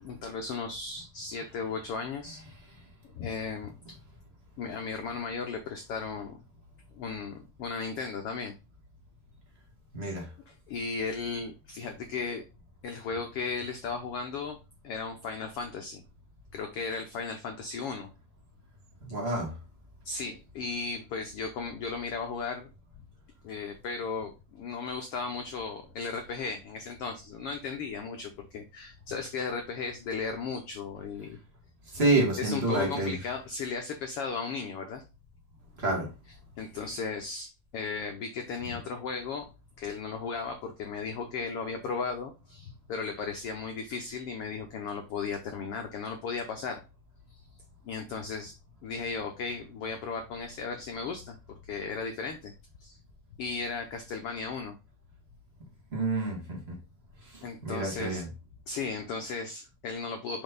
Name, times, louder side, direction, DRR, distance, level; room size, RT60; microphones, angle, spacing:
voice 1, 0.0-2.4 3.2-3.7 4.6-6.4 6.9-8.5 10.5-12.4 12.8-14.6 14.8-16.0 16.5-18.1 20.0-22.7 23.4-31.4 32.4-35.0 36.6-39.5 39.8-46.8 47.3-47.4 47.8-48.5 48.8-51.4 51.7-52.5 52.8-53.0 53.4-54.8 57.4-58.2 58.7-60.4, left 5 dB, 90° left, 4 dB, 1.3 m, -35 dB
voice 2, 9.9-10.3 19.0-19.5 31.9-33.1 35.8-36.1 55.9-56.7 57.3-58.2, right 2 dB, 25° right, 0 dB, 1.6 m, -28 dB
5.4 x 5.3 x 3.8 m, 0.29 s
omnidirectional pair, 3.8 m